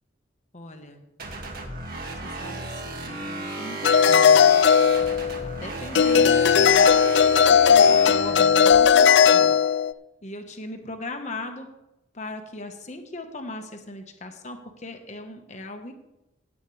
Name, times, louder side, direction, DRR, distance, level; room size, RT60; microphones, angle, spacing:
voice 1, 0.5-1.1 2.2-4.5 5.6-7.0 7.5-9.6 10.2-11.7 12.1-15.9, left 2 dB, 35° left, 5 dB, 1.2 m, -38 dB
sound 1, 1.2-8.7, right 2 dB, 50° right, 2.0 m, -35 dB
sound 2, 3.8-5.5 5.9-9.9, left 7 dB, 60° left, 0.4 m, -17 dB
16.5 x 8.5 x 3.3 m, 0.93 s
head